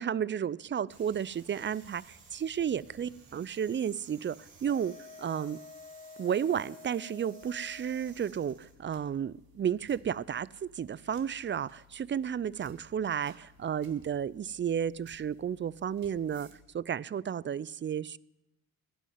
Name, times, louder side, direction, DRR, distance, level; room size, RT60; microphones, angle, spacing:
voice 1, 0.0-4.9 5.2-5.6 6.2-16.5 16.7-18.2, right 8 dB, 30° right, 22 dB, 0.4 m, -32 dB
sound 1, 0.9-8.7, right 4 dB, 90° right, 4.3 m, -57 dB
Wind instrument woodwind instrument, 4.6-8.2, left 4 dB, 20° left, 1.0 m, -50 dB
sound 2, 7.4-16.6, left 1 dB, 65° right, 2.1 m, -60 dB
16.5 x 6.2 x 9.4 m, 0.93 s
supercardioid pair, 55°, 38 cm